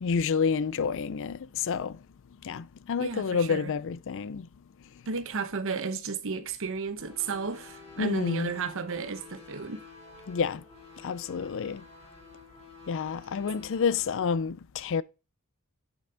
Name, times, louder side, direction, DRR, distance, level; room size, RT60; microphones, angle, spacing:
voice 1, 0.0-1.4 1.7-1.9 2.5-4.4 8.0-8.5 10.3-10.6 11.0-11.8 12.9-15.0, left 5 dB, 60° left, 0.4 m, -29 dB
voice 2, 3.0-3.7 5.1-9.8, right 5 dB, 65° right, 1.0 m, -33 dB
sound 1, 7.0-14.3, left 4 dB, 30° left, 3.2 m, -50 dB
9.0 x 5.5 x 3.7 m
head